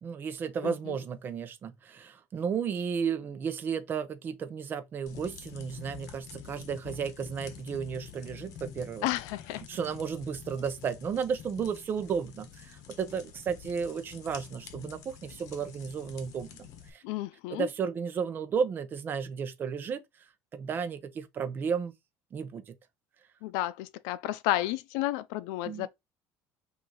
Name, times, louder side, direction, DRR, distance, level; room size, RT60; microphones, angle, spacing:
voice 1, 0.0-9.0 9.7-17.0 17.5-20.0 20.5-21.9 22.3-22.7 25.7-25.9, right 6 dB, 30° right, 0.7 m, -33 dB
voice 2, 0.6-1.0 9.0-9.6 17.0-17.7 23.4-25.9, left 15 dB, 85° left, 0.5 m, -32 dB
sound 1, 5.1-16.9, left 8 dB, 60° left, 1.0 m, -47 dB
6.1 x 2.7 x 3.0 m
cardioid pair, 150°, 6 cm